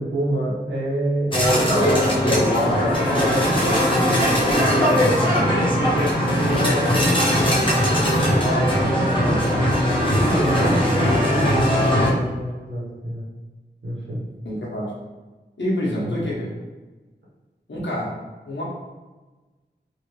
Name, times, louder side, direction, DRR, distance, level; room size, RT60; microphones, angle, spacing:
voice 1, 0.0-2.0 3.3-3.6 6.4-6.7 10.3-13.3 13.8-14.2 16.0-16.3, right 1 dB, 90° right, -7 dB, 1.1 m, -27 dB
sound 1, 1.3-12.1, equal, 30° left, 0.9 m, -19 dB
voice 2, 2.3-5.4 6.4-9.6 14.4-14.9 15.6-16.5 17.7-18.2 18.5-18.6, left 1 dB, 90° left, -5 dB, 1.0 m, -28 dB
3.1 x 2.8 x 3.0 m, 1.2 s
wide cardioid pair, 40°, 19 cm